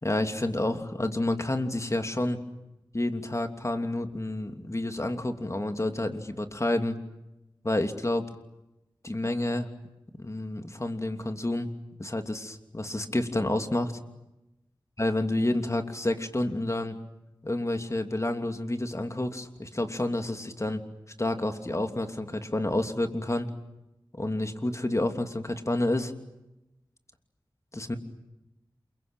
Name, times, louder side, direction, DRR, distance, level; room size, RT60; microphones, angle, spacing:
voice 1, 0.0-2.4 2.9-7.0 7.6-8.3 9.0-9.7 10.2-11.7 12.0-13.9 15.0-17.0 17.4-20.8 21.2-23.5 24.1-26.1 27.7-28.0, left 1 dB, 35° left, 6 dB, 2.9 m, -29 dB
28.5 x 23.5 x 9.0 m, 0.93 s
wide cardioid pair, 45°, 9 cm